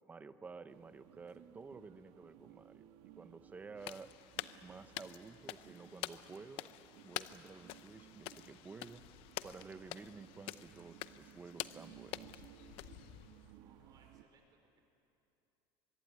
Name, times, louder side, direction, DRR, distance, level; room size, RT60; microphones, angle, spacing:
voice 1, 0.1-2.9 3.2-4.1 4.6-6.7 7.0-9.0 9.4-12.4, right 4 dB, 15° right, 12 dB, 0.8 m, -52 dB
sound 1, 0.7-14.2, right 10 dB, 70° right, 1.6 m, -60 dB
sound 2, 3.8-13.5, left 16 dB, 55° left, 0.7 m, -48 dB
voice 2, 13.3-14.8, right 4 dB, 35° right, 4 dB, 4.8 m, -69 dB
24.0 x 23.5 x 9.5 m, 2.8 s
cardioid pair, 155°, 11 cm